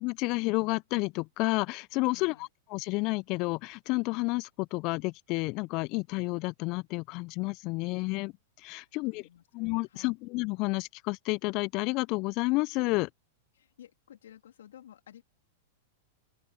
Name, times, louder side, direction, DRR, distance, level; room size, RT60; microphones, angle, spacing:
voice 1, 0.0-2.3 2.7-8.3 8.6-9.2 9.5-13.1, left 25 dB, 45° left, 0.5 m, -30 dB
voice 2, 2.1-2.5 8.8-9.4 9.9-10.1 13.5-15.2, left 10 dB, 65° left, 3.4 m, -54 dB
open air
figure-of-eight pair, 100°, 0 cm